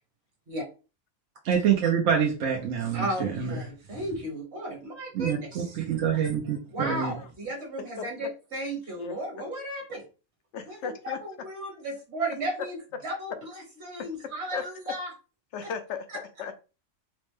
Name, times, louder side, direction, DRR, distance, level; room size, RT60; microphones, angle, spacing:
voice 1, 1.4-3.6 3.9-4.0 5.1-7.1, right 8 dB, 70° right, 1.0 m, -26 dB
voice 2, 2.9-5.8 6.7-10.0 10.7-12.8 13.0-15.1 15.6-15.7 16.1-16.2, right 1 dB, 55° right, 1.5 m, -34 dB
voice 3, 8.0-8.3 8.9-9.2 10.5-11.2 14.5-14.7 15.5-16.6, left 6 dB, 70° left, 0.9 m, -36 dB
4.2 x 2.1 x 3.1 m
omnidirectional pair, 1.3 m